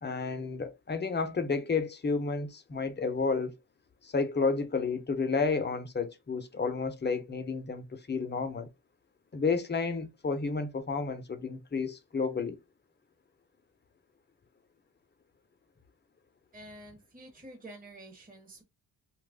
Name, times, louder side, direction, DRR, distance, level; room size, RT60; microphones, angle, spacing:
voice 1, 0.0-3.6 4.0-8.7 9.3-12.6, left 4 dB, 25° left, 0.6 m, -31 dB
voice 2, 16.5-18.6, right 1 dB, 20° right, 0.9 m, -49 dB
2.9 x 2.4 x 3.4 m
cardioid pair, 80°, 42 cm